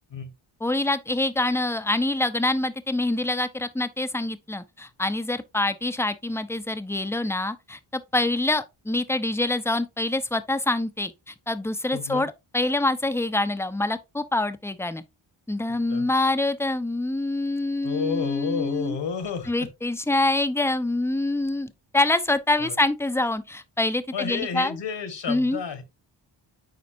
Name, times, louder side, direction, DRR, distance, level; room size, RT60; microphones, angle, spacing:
voice 1, 0.6-15.0 15.5-19.0 19.5-24.8 25.3-25.6, left 2 dB, 5° left, 0.7 m, -25 dB
voice 2, 11.9-12.3 15.7-16.1 17.8-19.7 22.6-22.8 24.1-25.8, left 7 dB, 65° left, 1.6 m, -31 dB
9.6 x 4.1 x 2.7 m
cardioid pair, 65°, 46 cm